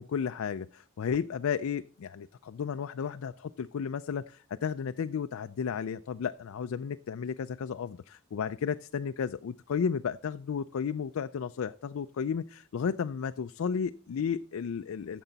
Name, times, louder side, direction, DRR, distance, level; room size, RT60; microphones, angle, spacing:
voice 1, 0.0-15.2, left 6 dB, 70° left, 10 dB, 0.4 m, -33 dB
14.5 x 6.9 x 4.0 m, 0.43 s
head